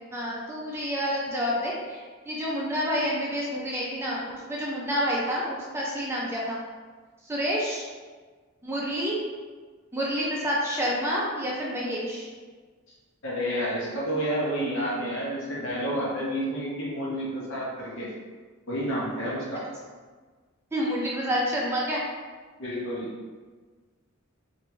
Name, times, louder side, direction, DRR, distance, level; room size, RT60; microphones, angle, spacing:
voice 1, 0.1-4.2 4.5-6.6 7.3-7.9 8.6-9.2 9.9-12.3 20.7-22.0, equal, 10° right, -5 dB, 0.4 m, -28 dB
voice 2, 13.2-18.1 18.7-19.6 22.6-23.1, equal, 65° left, -5 dB, 0.9 m, -30 dB
3.2 x 2.6 x 3.0 m, 1.5 s
head